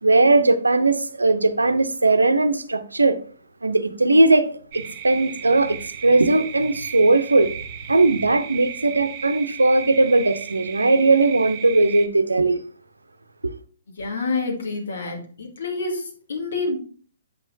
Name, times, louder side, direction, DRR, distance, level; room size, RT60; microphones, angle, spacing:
voice 1, 0.0-3.2 3.6-7.5 7.9-12.6 13.4-13.5, right 2 dB, 85° right, 0.6 m, -18 dB
sound 1, 4.7-12.1, right 9 dB, 40° right, 0.9 m, -36 dB
voice 2, 14.0-16.8, left 3 dB, 65° left, 2.3 m, -28 dB
8.3 x 6.2 x 2.7 m
figure-of-eight pair, 125°, 0 cm